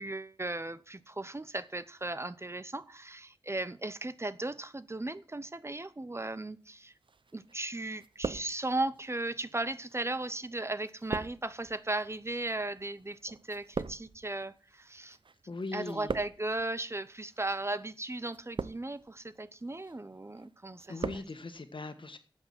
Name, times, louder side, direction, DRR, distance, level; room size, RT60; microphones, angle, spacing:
voice 1, 0.0-6.9 7.3-15.2 15.7-21.2, right 2 dB, 30° right, 0.8 m, -36 dB
sound 1, 7.1-7.7 7.9-9.0 9.7-15.3 15.6-16.6 17.3-17.6 18.3-19.1 19.5-20.0 20.4-21.3 21.6-21.7, right 4 dB, 70° right, 0.6 m, -40 dB
voice 2, 15.5-16.2 20.9-22.2, left 3 dB, 70° left, 1.5 m, -40 dB
13.0 x 8.2 x 6.0 m
wide cardioid pair, 70°, 9 cm